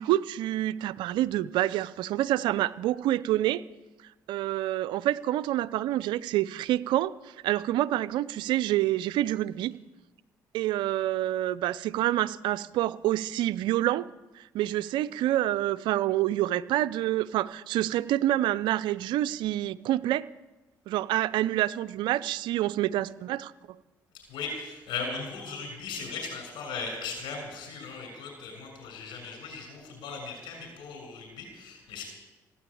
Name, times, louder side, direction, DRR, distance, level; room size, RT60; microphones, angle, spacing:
voice 1, 0.0-3.6 4.3-9.8 10.5-14.1 14.3-20.2 20.9-23.8, right 14 dB, 75° right, 16 dB, 0.6 m, -27 dB
voice 2, 24.3-32.0, left 4 dB, 75° left, 3 dB, 6.7 m, -38 dB
16.5 x 9.7 x 8.6 m, 1.1 s
supercardioid pair, 65°, 8 cm